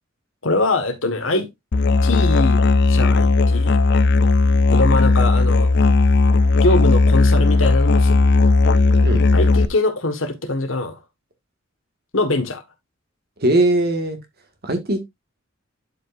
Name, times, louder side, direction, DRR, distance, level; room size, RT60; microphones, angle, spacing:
voice 1, 0.4-1.5 2.0-2.6 2.9-3.8 4.7-5.7 6.5-8.3 9.3-11.0 12.1-12.6, left 2 dB, 75° left, 1.5 m, -22 dB
Musical instrument, 1.7-9.7, left 3 dB, 60° left, 0.5 m, -15 dB
voice 2, 13.4-14.2 14.6-15.0, right 1 dB, 50° right, 1.7 m, -19 dB
11.0 x 5.0 x 2.5 m
head